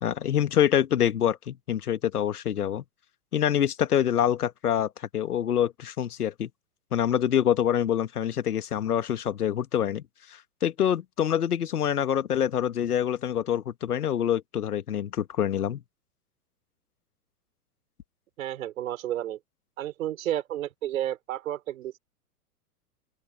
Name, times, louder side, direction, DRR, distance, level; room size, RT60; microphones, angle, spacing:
voice 1, 0.0-2.8 3.3-6.5 6.9-10.0 10.3-15.8, left 10 dB, 70° left, 1.6 m, -26 dB
voice 2, 18.4-19.4 19.8-22.0, right 12 dB, 60° right, 5.8 m, -31 dB
open air
figure-of-eight pair, 105°, 47 cm